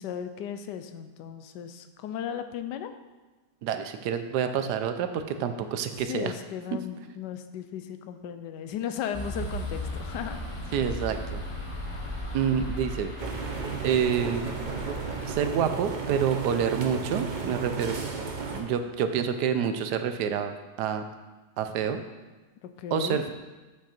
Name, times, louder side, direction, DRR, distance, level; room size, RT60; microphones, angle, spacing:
voice 1, 0.0-2.9 6.0-10.4 22.6-23.2, left 9 dB, 80° left, 9 dB, 1.2 m, -36 dB
voice 2, 3.6-6.3 6.7-6.8 10.7-11.4 12.3-13.1 13.8-14.5 15.3-18.0 18.5-21.0 21.6-22.0 22.9-23.3, right 7 dB, 75° right, 8 dB, 1.2 m, -28 dB
sound 1, 9.1-15.3, equal, 25° left, 0.7 m, -36 dB
sound 2, 13.2-18.6, right 5 dB, 55° right, 0.5 m, -34 dB
7.7 x 6.1 x 4.3 m, 1.2 s
omnidirectional pair, 1.8 m